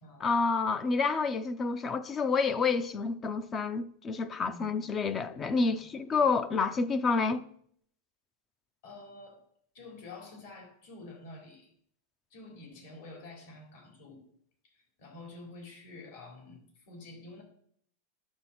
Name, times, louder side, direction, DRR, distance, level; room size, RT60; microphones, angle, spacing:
voice 1, 0.2-7.4, left 4 dB, 20° left, 0.4 m, -29 dB
voice 2, 4.4-4.8 5.6-5.8 8.8-9.4 9.7-11.7 12.3-14.2 14.6-17.4, left 2 dB, 60° left, 3.7 m, -48 dB
10.5 x 7.0 x 4.2 m
supercardioid pair, 160°, 0 cm